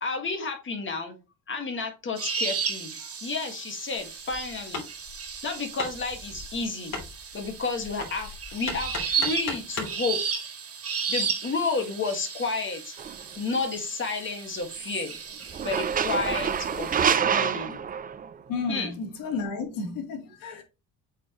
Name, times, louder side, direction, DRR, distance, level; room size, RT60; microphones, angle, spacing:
voice 1, 0.0-1.2 1.5-4.8 5.4-7.0 7.3-10.2 11.1-12.9 13.4-15.1 15.6-16.9 17.3-17.8 18.7-18.9, left 4 dB, 35° left, 1.8 m, -31 dB
sound 1, 2.2-17.2, right 6 dB, 40° right, 2.1 m, -34 dB
Hammer, 4.0-10.0, left 3 dB, 50° left, 3.2 m, -38 dB
sound 2, 13.0-13.2 15.5-18.4, right 7 dB, 25° right, 0.5 m, -26 dB
voice 2, 18.5-20.6, left 4 dB, 80° left, 2.7 m, -32 dB
8.0 x 4.8 x 3.0 m
cardioid pair, 125°, 34 cm